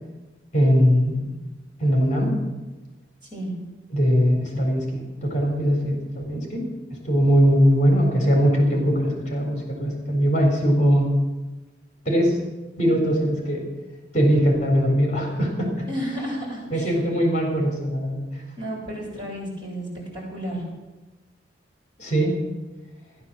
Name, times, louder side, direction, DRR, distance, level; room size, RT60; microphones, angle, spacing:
voice 1, 0.5-1.3 1.8-2.3 3.9-6.6 7.0-11.1 12.1-12.4 12.8-13.6 14.1-15.9 16.7-18.4 22.0-22.3, equal, 40° left, 1 dB, 4.0 m, -21 dB
voice 2, 15.9-17.0 18.6-20.6, equal, 25° right, -6 dB, 7.8 m, -32 dB
15.0 x 12.0 x 7.5 m, 1.1 s
head